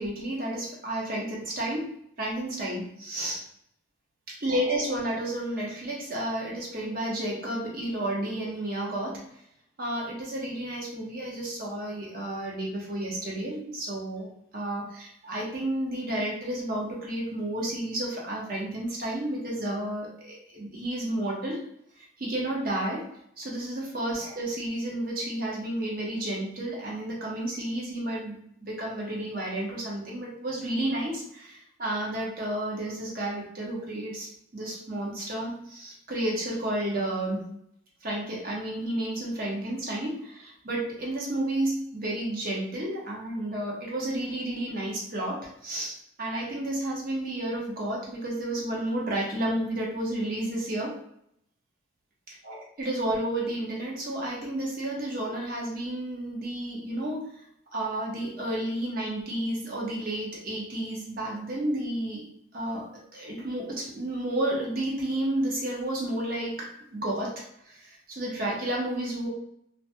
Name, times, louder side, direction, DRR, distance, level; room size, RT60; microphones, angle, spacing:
voice 1, 0.0-3.4 4.3-9.2 9.8-14.3 14.5-21.6 22.2-23.1 23.4-37.4 38.0-51.0 52.3-57.2 57.7-62.3 62.5-69.3, right 1 dB, 50° right, -3 dB, 0.8 m, -31 dB
2.2 x 2.1 x 2.7 m, 0.72 s
head